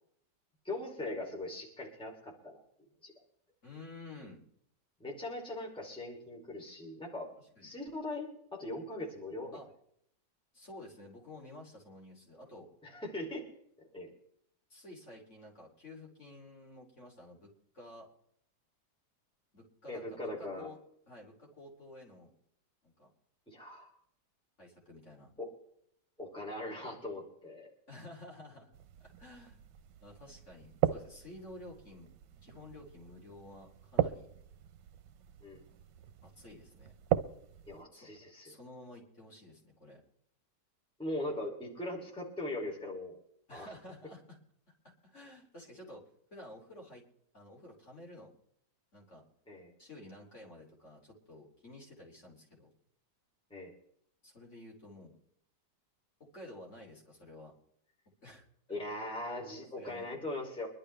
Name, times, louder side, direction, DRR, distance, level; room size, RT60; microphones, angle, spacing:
voice 1, 0.6-2.6 3.0-3.1 5.0-7.3 7.6-9.6 12.8-13.4 13.9-14.1 19.9-20.7 23.5-23.9 25.4-25.5 26.2-27.7 35.4-35.6 37.7-38.5 41.0-43.2 43.5-43.7 49.5-49.7 53.5-53.7 58.7-60.7, left 1 dB, 5° left, -2 dB, 2.9 m, -40 dB
voice 2, 3.6-4.4 7.4-7.7 9.5-9.7 10.5-12.7 14.7-18.1 19.5-20.8 21.1-22.3 22.8-23.1 24.6-25.3 27.9-28.7 29.0-29.6 30.0-32.1 32.4-34.3 36.2-36.9 37.9-38.1 38.4-40.0 43.5-44.4 44.8-46.0 46.3-47.0 47.3-48.3 48.9-49.2 49.8-52.7 54.2-55.1 56.2-57.5 58.2-58.4 59.8-60.1, left 1 dB, 40° left, -2 dB, 3.3 m, -51 dB
sound 1, 28.7-37.9, right 11 dB, 85° right, 1.4 m, -38 dB
24.5 x 11.5 x 3.3 m, 0.70 s
omnidirectional pair, 1.9 m